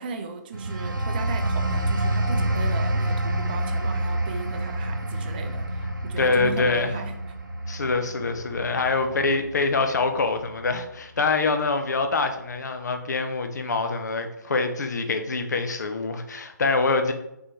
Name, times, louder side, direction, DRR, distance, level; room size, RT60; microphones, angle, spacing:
voice 1, 0.0-7.1, right 5 dB, 30° right, 6 dB, 0.5 m, -36 dB
sound 1, 0.5-10.9 11.3-11.6, right 1 dB, 90° right, 0.6 m, -28 dB
voice 2, 6.2-6.9 7.7-17.1, left 3 dB, 60° left, 6 dB, 0.6 m, -25 dB
3.7 x 3.5 x 2.9 m, 0.83 s
figure-of-eight pair, 145°, 10 cm